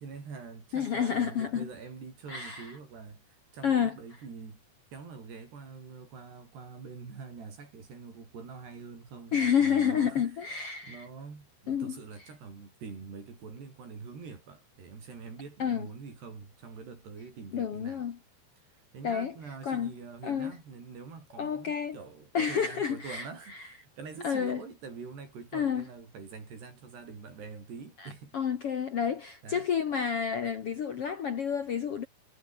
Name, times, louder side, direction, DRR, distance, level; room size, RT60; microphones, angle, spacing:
voice 1, 0.0-4.6 4.9-10.3 10.8-18.1 18.7-28.4 29.4-29.7, right 5 dB, 85° right, 8.8 m, -45 dB
voice 2, 0.7-1.7 2.3-2.7 3.6-4.0 9.3-11.1 11.7-12.0 15.6-15.9 17.5-18.2 19.0-19.3 19.6-19.9 20.2-20.5 21.4-22.0 22.3-23.7 24.2-24.6 25.5-25.9 28.0-32.1, left 7 dB, 60° left, 1.5 m, -30 dB
omnidirectional pair, 4.6 m